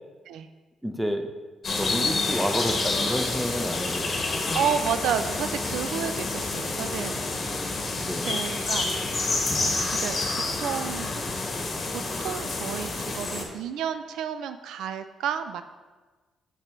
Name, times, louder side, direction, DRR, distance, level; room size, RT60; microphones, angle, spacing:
voice 1, 0.8-1.3 1.8-4.4 7.7-8.4, equal, 5° right, 6 dB, 0.6 m, -30 dB
sound 1, 1.6-13.4, left 3 dB, 40° left, 1.1 m, -28 dB
voice 2, 4.5-7.2 8.2-9.2 9.5-11.1 11.9-15.6, right 8 dB, 80° right, 10 dB, 0.3 m, -31 dB
6.5 x 6.1 x 3.1 m, 1.3 s
cardioid pair, 90°, 0 cm